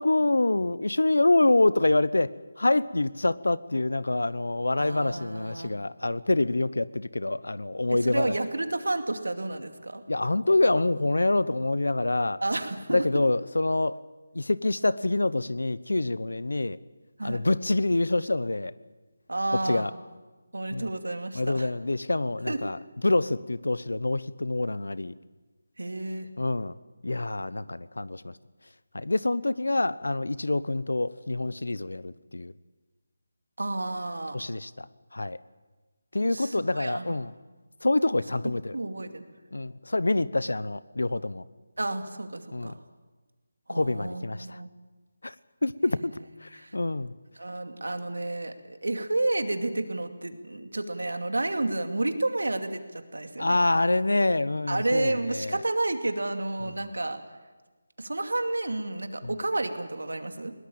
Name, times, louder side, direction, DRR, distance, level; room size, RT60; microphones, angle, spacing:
voice 1, 0.0-8.3 10.1-12.4 12.9-14.0 14.3-16.8 17.2-18.7 19.6-19.9 20.7-20.9 21.3-25.1 26.4-26.7 27.0-28.4 28.9-32.5 34.3-34.9 35.1-35.4 36.1-37.3 37.8-38.8 39.5-41.5 42.5-42.7 43.7-44.6 45.2-45.3 45.6-47.1 53.4-55.6 59.2-59.3, left 2 dB, 85° left, 18 dB, 0.9 m, -26 dB
voice 2, 4.8-5.7 7.9-10.0 12.4-13.0 17.2-17.4 19.3-19.9 20.5-21.7 22.5-22.6 25.8-26.3 33.6-34.4 36.3-37.1 38.7-39.2 41.8-42.8 43.7-44.7 45.9-46.3 46.6-46.8 47.4-53.6 54.7-57.2 58.0-60.5, right 2 dB, 85° right, 7 dB, 2.5 m, -31 dB
21.5 x 19.0 x 8.7 m, 1.3 s
figure-of-eight pair, 165°, 0 cm